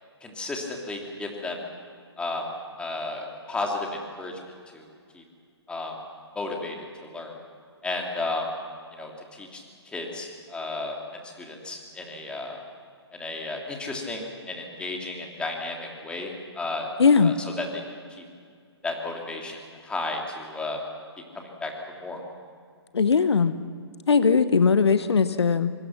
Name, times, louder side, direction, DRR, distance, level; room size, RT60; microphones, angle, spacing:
voice 1, 0.2-1.6 2.2-2.4 2.8-4.4 4.7-4.9 5.1-5.2 5.7-5.9 6.3-7.4 7.8-8.5 9.0-12.6 13.1-16.9 17.2-17.8 18.2-18.3 18.8-20.8 21.3-21.7 22.0-22.2, left 2 dB, 5° left, 1 dB, 3.1 m, -33 dB
voice 2, 17.0-17.3 22.9-23.5 24.1-25.7, left 5 dB, 75° left, 12 dB, 1.1 m, -19 dB
25.5 x 25.0 x 6.0 m, 2.2 s
figure-of-eight pair, 135°, 14 cm